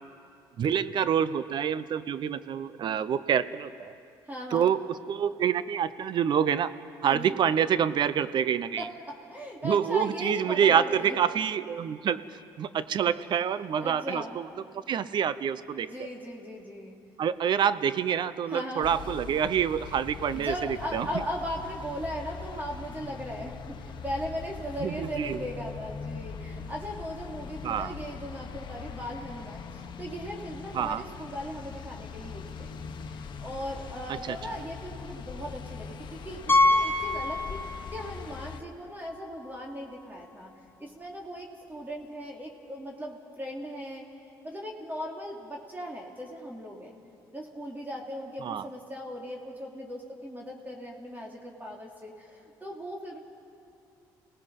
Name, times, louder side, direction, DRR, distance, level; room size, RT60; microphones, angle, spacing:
voice 1, 0.6-3.9 4.5-6.7 7.0-8.8 9.6-12.2 12.6-14.5 14.7-15.9 17.2-20.5 20.9-21.1 24.8-25.4 27.6-27.9 30.7-31.0 34.3-34.4 48.4-48.6, right 8 dB, 55° right, 15 dB, 0.7 m, -27 dB
voice 2, 4.2-4.7 7.0-7.4 8.8-11.2 13.8-14.4 15.8-17.0 18.5-18.9 20.3-44.1 44.4-46.9 47.3-53.2, equal, 20° right, -1 dB, 3.1 m, -38 dB
sound 1, 18.8-38.6, left 6 dB, 55° left, 1.2 m, -41 dB
Piano, 36.5-38.1 38.4-38.5 39.1-39.2 39.4-39.5 41.6-41.7, left 2 dB, 20° left, 2.4 m, -25 dB
28.0 x 18.5 x 5.4 m, 2.5 s
supercardioid pair, 75°, 9 cm